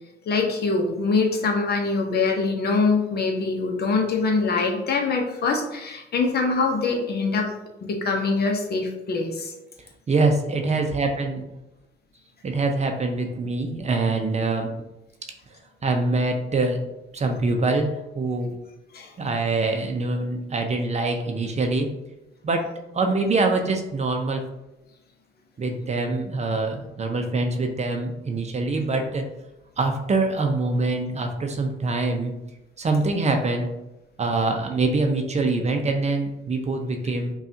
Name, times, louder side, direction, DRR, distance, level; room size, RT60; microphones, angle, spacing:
voice 1, 0.3-7.5 7.8-9.5 18.9-19.1, left 4 dB, 55° left, 2 dB, 0.8 m, -24 dB
voice 2, 10.1-11.5 12.4-14.7 15.8-16.8 17.1-18.6 19.2-21.9 22.4-24.4 25.6-29.3 29.8-32.3 32.8-33.7 34.2-37.3, right 3 dB, 35° right, 4 dB, 0.6 m, -24 dB
5.3 x 2.4 x 2.7 m, 0.92 s
cardioid pair, 90°, 20 cm